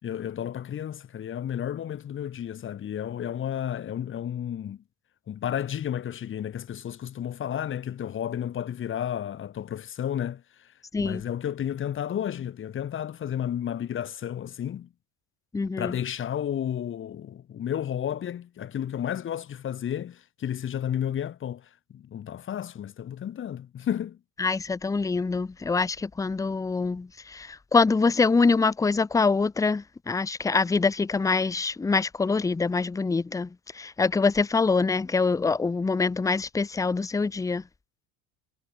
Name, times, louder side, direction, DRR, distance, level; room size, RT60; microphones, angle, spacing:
voice 1, 0.0-4.8 5.3-14.9 15.8-24.2, left 10 dB, 40° left, 5.2 m, -32 dB
voice 2, 15.5-15.9 24.4-33.5 33.8-37.6, left 4 dB, 10° left, 0.7 m, -25 dB
cardioid pair, 125°, 30 cm